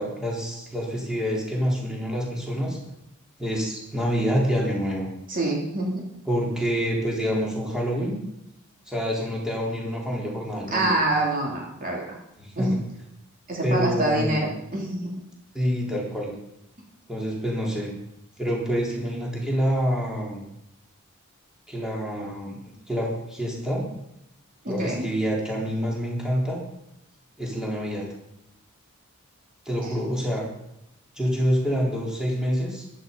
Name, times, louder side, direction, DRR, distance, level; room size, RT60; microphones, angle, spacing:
voice 1, 0.0-2.8 3.4-5.1 6.3-8.2 8.9-10.9 12.4-12.7 13.6-14.4 15.5-16.3 17.1-17.9 18.4-20.4 21.7-22.6 22.9-23.9 24.7-26.6 27.4-28.1 29.7-30.4 31.2-32.9, equal, 5° right, -3 dB, 3.8 m, -27 dB
voice 2, 5.3-6.0 10.7-12.1 12.6-12.8 13.5-15.1 24.6-25.1 29.8-29.9, right 1 dB, 40° right, -2 dB, 3.1 m, -26 dB
15.0 x 12.0 x 5.4 m, 0.82 s
head